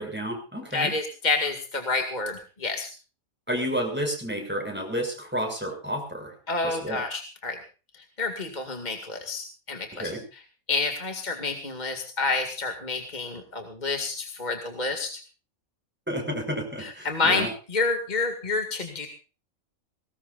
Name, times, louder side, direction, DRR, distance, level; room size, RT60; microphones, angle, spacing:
voice 1, 0.0-0.9 3.5-6.3 6.6-7.0 9.9-10.2 16.1-17.5, equal, 5° right, 2 dB, 6.2 m, -31 dB
voice 2, 0.7-2.9 6.5-7.6 8.2-10.1 10.7-15.1 16.8-19.1, left 3 dB, 30° left, 5 dB, 2.3 m, -29 dB
22.5 x 19.5 x 2.5 m, 0.35 s
omnidirectional pair, 1.4 m